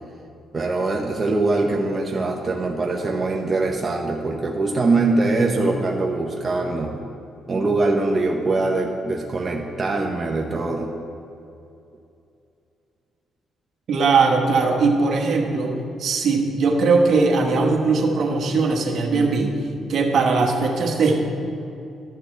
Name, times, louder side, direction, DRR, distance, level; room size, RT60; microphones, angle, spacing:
voice 1, 0.5-6.9 7.5-10.9, right 2 dB, 30° right, 0 dB, 0.8 m, -22 dB
voice 2, 13.9-19.6 19.9-21.2, right 4 dB, 60° right, 2 dB, 1.2 m, -20 dB
13.5 x 6.8 x 3.4 m, 2.6 s
cardioid pair, 90°, 0 cm